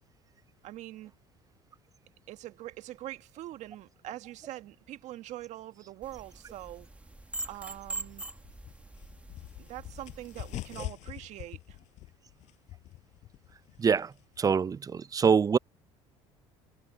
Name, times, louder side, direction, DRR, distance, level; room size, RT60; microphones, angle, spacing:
voice 1, 0.6-1.1 2.3-6.9 7.4-8.2 9.6-11.8, right 15 dB, 65° right, 1.6 m, -43 dB
sound 1, 6.0-10.8, right 2 dB, 10° right, 1.7 m, -43 dB
sound 2, 8.4-14.6, left 16 dB, 65° left, 5.4 m, -45 dB
voice 2, 13.8-14.1 14.4-15.6, right 6 dB, 25° right, 0.6 m, -24 dB
supercardioid pair, 80°, 13 cm